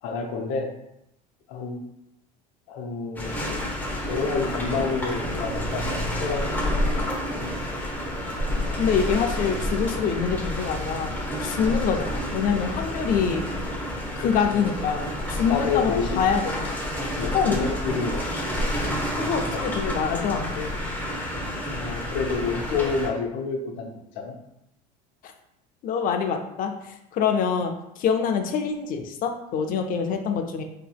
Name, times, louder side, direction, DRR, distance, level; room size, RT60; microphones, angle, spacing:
voice 1, 0.0-0.7 1.5-1.8 2.7-3.7 4.0-6.7 11.6-11.7 14.5-14.6 15.5-16.2 17.2-18.2 19.5-19.7 21.7-24.3, left 5 dB, 65° left, 2 dB, 0.8 m, -29 dB
sound 1, 3.2-23.1, equal, 10° left, 0.9 m, -29 dB
voice 2, 8.8-13.4 14.2-16.6 17.3-17.6 19.2-20.8 25.2-25.3 25.8-30.6, left 6 dB, 45° left, 5 dB, 0.5 m, -25 dB
3.9 x 2.8 x 2.3 m, 0.82 s
supercardioid pair, 95°, 20 cm